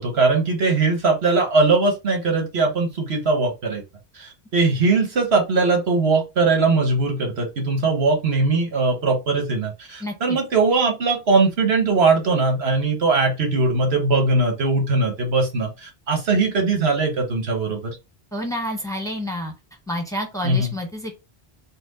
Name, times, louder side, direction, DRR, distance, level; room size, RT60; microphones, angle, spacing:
voice 1, 0.0-3.8 4.1-18.0 20.4-20.7, right 3 dB, 75° right, 2 dB, 1.6 m, -20 dB
voice 2, 10.0-10.4 18.3-19.5 19.9-21.1, equal, 5° left, 2 dB, 1.1 m, -29 dB
4.4 x 2.3 x 4.0 m, 0.26 s
omnidirectional pair, 1.1 m